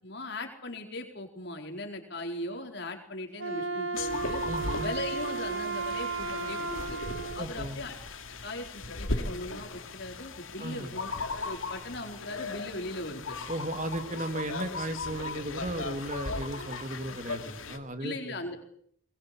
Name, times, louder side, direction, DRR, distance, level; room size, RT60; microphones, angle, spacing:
voice 1, 0.0-4.4 4.8-7.0 7.3-7.9 8.4-11.1 11.4-13.4 17.1-17.2 18.0-18.6, left 2 dB, 55° left, 3 dB, 4.5 m, -39 dB
Wind instrument woodwind instrument, 3.3-7.5, right 4 dB, 80° right, 2.0 m, -34 dB
sound 1, 3.9-17.8, left 3 dB, 90° left, 2.5 m, -37 dB
voice 2, 4.4-5.0 7.4-7.8 10.6-11.0 13.5-18.4, right 1 dB, 40° right, 8 dB, 2.3 m, -36 dB
22.5 x 21.5 x 8.6 m, 0.64 s
head